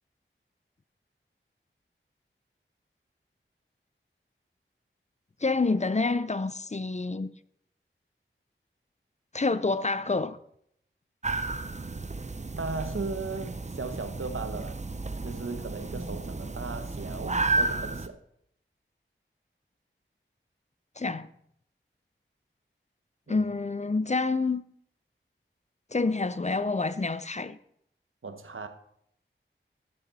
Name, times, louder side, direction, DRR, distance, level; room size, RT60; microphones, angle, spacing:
voice 1, 5.4-7.3 9.3-10.4 21.0-21.3 23.3-24.6 25.9-27.6, left 3 dB, 35° left, 0.5 m, -27 dB
sound 1, 11.2-18.1, right 3 dB, 35° right, 0.6 m, -32 dB
voice 2, 12.6-14.8 15.2-18.2 23.3-23.5 28.2-28.7, right 3 dB, 80° right, 1.0 m, -37 dB
13.0 x 7.2 x 4.1 m
wide cardioid pair, 50°, 21 cm